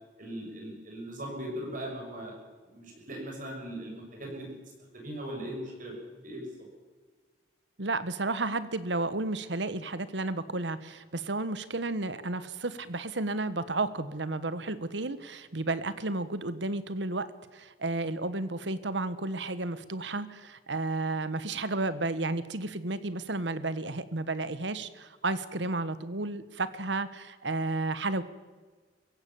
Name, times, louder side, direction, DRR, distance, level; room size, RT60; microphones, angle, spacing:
voice 1, 0.2-2.3 2.7-4.5 4.9-6.5, right 1 dB, 45° right, 0 dB, 5.9 m, -39 dB
voice 2, 7.8-17.3 17.5-28.2, right 2 dB, 80° right, 14 dB, 1.4 m, -32 dB
24.5 x 15.5 x 7.2 m, 1.4 s
head